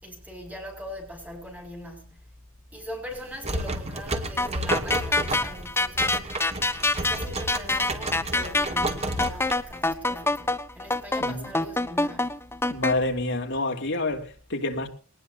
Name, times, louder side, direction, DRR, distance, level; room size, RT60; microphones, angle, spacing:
voice 1, 0.0-2.3 2.7-6.2 7.0-12.5, equal, 5° right, 6.0 m, -41 dB
sound 1, 3.1-10.0, right 1 dB, 30° right, 2.6 m, -32 dB
sound 2, 4.4-12.9, left 2 dB, 10° left, 1.2 m, -26 dB
voice 2, 12.7-14.9, left 2 dB, 60° left, 3.2 m, -28 dB
22.5 x 19.5 x 2.7 m
head